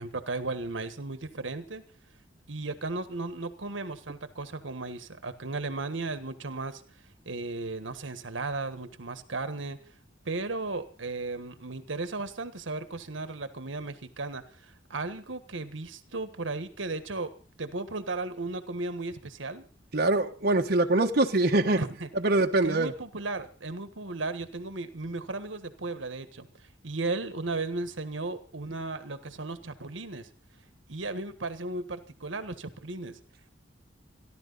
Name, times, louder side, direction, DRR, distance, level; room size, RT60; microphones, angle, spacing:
voice 1, 0.0-1.8 2.5-6.8 7.2-9.8 10.2-17.3 17.6-19.7 21.8-22.1 22.6-30.3 30.9-33.2, right 3 dB, 85° right, 10 dB, 1.5 m, -35 dB
voice 2, 19.9-21.8 22.2-22.9, right 2 dB, 55° right, 3 dB, 1.2 m, -23 dB
29.5 x 11.5 x 4.1 m, 0.39 s
head